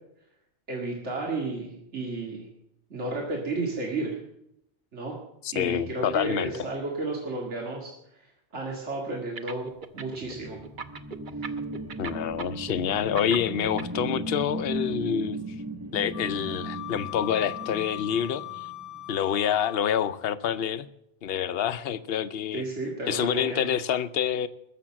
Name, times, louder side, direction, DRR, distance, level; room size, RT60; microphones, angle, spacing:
voice 1, 0.7-2.5 2.9-4.2 4.9-5.2 5.5-10.6 22.5-23.7, right 2 dB, 80° right, -1 dB, 2.4 m, -33 dB
voice 2, 5.4-6.5 12.0-15.4 15.9-18.7 19.1-20.9 21.2-22.6 23.1-24.5, left 9 dB, 60° left, 13 dB, 0.9 m, -27 dB
sound 1, 9.4-10.3 10.6-14.0, right 5 dB, 50° right, 1.0 m, -37 dB
sound 2, 9.9-19.1, right 2 dB, 20° right, 0.4 m, -37 dB
Wind instrument woodwind instrument, 16.1-20.2, left 17 dB, 85° left, 1.2 m, -40 dB
21.0 x 7.1 x 7.3 m, 0.78 s
omnidirectional pair, 1.2 m